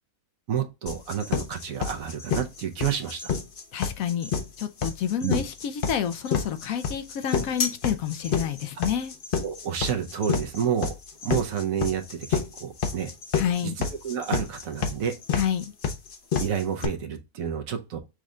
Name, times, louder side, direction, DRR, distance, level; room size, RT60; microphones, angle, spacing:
voice 1, 0.5-3.3 5.2-5.4 9.4-11.0 11.2-13.1 13.6-15.2 16.4-18.0, right 8 dB, 70° right, 1.0 m, -29 dB
sound 1, 0.9-16.9, left 6 dB, 50° left, 0.7 m, -28 dB
voice 2, 3.7-4.3 4.6-9.1 13.3-13.7 15.3-15.7, left 9 dB, 70° left, 1.0 m, -29 dB
6.2 x 2.2 x 3.7 m
omnidirectional pair, 1.6 m